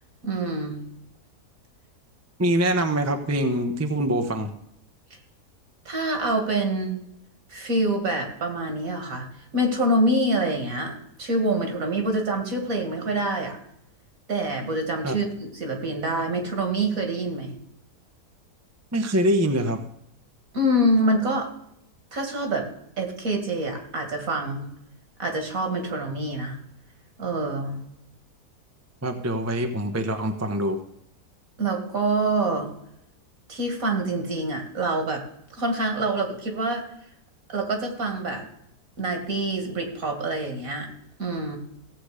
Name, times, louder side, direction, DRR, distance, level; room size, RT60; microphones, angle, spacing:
voice 1, 0.2-0.8 5.9-7.0 7.5-9.3 9.5-13.6 14.3-17.6 20.5-21.5 22.1-22.7 23.0-24.7 25.2-26.6 27.2-27.8 31.6-32.7 33.5-35.2 35.5-36.8 37.5-38.5 39.0-40.9 41.2-41.6, right 1 dB, 60° right, 4 dB, 2.5 m, -26 dB
voice 2, 2.4-4.5 15.0-15.2 18.9-19.8 29.0-30.8, right 1 dB, 10° right, 6 dB, 0.8 m, -24 dB
16.0 x 8.0 x 5.0 m, 0.75 s
omnidirectional pair, 1.7 m